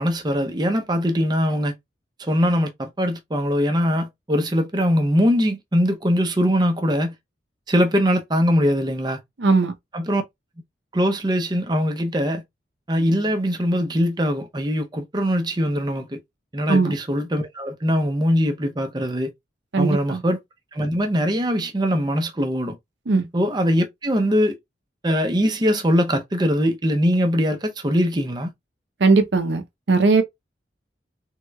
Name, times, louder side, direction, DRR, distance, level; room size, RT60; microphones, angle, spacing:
voice 1, 0.0-1.7 2.2-7.1 7.7-9.2 9.9-10.2 10.9-12.4 12.9-16.2 16.5-19.3 19.8-20.4 20.7-22.8 23.3-24.6 25.0-28.5, equal, 25° right, 0.6 m, -22 dB
voice 2, 9.4-9.7 16.7-16.9 19.7-20.2 23.1-23.3 29.0-29.6 29.9-30.2, right 3 dB, 70° right, 0.7 m, -18 dB
3.6 x 3.1 x 2.2 m
head